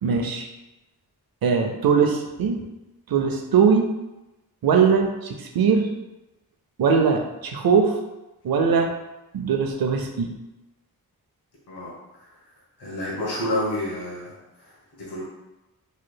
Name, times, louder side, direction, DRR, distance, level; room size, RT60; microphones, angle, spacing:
voice 1, 0.0-0.5 1.4-2.6 3.1-3.9 4.6-5.9 6.8-8.0 8.4-8.9 9.3-10.3, right 6 dB, 65° right, 4 dB, 0.6 m, -21 dB
voice 2, 12.8-15.2, left 1 dB, 80° left, -6 dB, 1.1 m, -29 dB
3.2 x 3.1 x 2.2 m, 1.0 s
cardioid pair, 45°, 38 cm